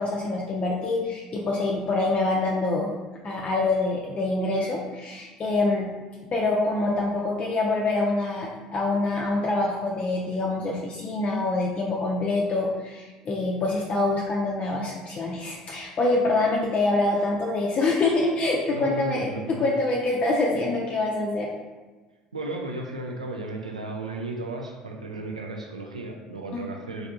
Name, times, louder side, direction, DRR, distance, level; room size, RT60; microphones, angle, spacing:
voice 1, 0.0-2.9 3.2-5.9 6.3-19.3 19.6-21.5 26.5-26.6, left 2 dB, 35° left, -2 dB, 0.4 m, -25 dB
voice 2, 18.7-19.7 22.3-27.1, right 2 dB, 90° right, 1 dB, 0.3 m, -34 dB
3.3 x 2.6 x 2.4 m, 1.3 s
figure-of-eight pair, 65°, 3 cm